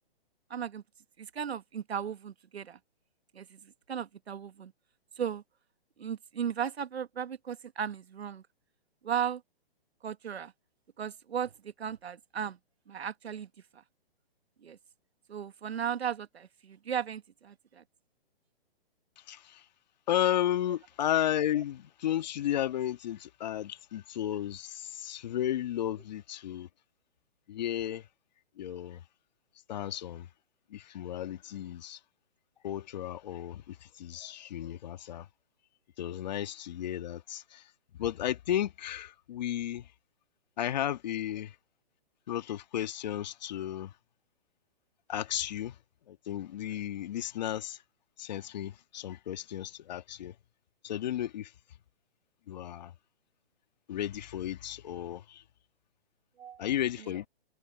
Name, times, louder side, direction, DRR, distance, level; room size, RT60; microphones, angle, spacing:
voice 1, 0.5-0.8 1.2-2.8 3.3-4.7 5.2-5.4 6.0-8.4 9.0-9.4 10.0-10.5 11.0-12.6 12.9-13.8 14.6-14.8 15.3-17.8 56.4-56.7, right 8 dB, 90° right, 1.3 m, -36 dB
voice 2, 19.2-19.7 20.1-26.7 27.5-28.1 28.6-29.0 29.7-30.3 30.7-32.0 32.6-35.3 36.0-37.7 38.0-39.9 40.6-41.6 42.3-43.9 45.1-45.8 46.1-47.8 48.2-50.3 50.8-51.5 52.5-52.9 53.9-55.4 56.6-57.3, left 11 dB, 45° left, 1.8 m, -33 dB
hypercardioid pair, 160°, 31 cm